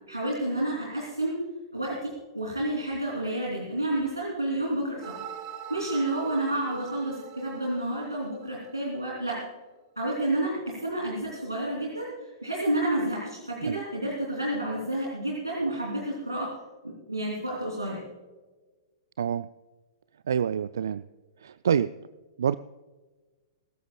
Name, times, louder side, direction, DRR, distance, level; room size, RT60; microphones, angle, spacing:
voice 1, 0.1-1.4 1.7-5.1 5.7-9.4 10.0-16.5 16.8-18.0, right 1 dB, 85° right, -4 dB, 3.1 m, -30 dB
sound 1, 5.0-9.0, right 8 dB, 35° right, 1.8 m, -43 dB
voice 2, 19.2-19.5 20.3-21.0 21.4-21.9 22.4-22.6, right 8 dB, 60° right, 16 dB, 0.3 m, -26 dB
23.0 x 14.0 x 2.3 m, 1.3 s
figure-of-eight pair, 105°, 2 cm